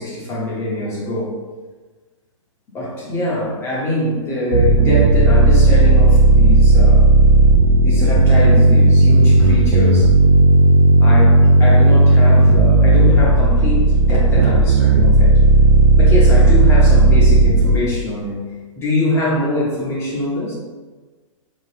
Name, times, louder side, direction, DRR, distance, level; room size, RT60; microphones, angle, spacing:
voice 1, 0.0-1.4 2.7-7.0 7.8-10.1 11.0-15.4 16.0-18.4 18.8-20.5, left 1 dB, 15° left, -6 dB, 0.8 m, -23 dB
sound 1, 4.5-17.8, right 2 dB, 50° right, 0.4 m, -12 dB
4.8 x 2.8 x 3.2 m, 1.3 s
hypercardioid pair, 145°, 17 cm